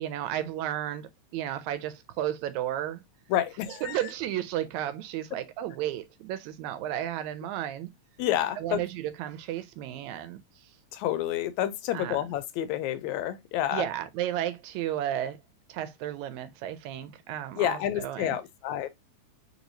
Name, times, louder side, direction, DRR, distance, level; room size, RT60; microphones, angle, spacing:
voice 1, 0.0-3.0 3.7-7.9 8.6-10.4 11.9-12.2 13.7-15.4 15.7-18.4, right 12 dB, 80° right, 1.9 m, -33 dB
voice 2, 3.3-4.0 8.2-8.8 10.9-13.9 17.6-18.9, left 12 dB, 80° left, 1.9 m, -29 dB
4.5 x 3.0 x 2.6 m
omnidirectional pair, 3.3 m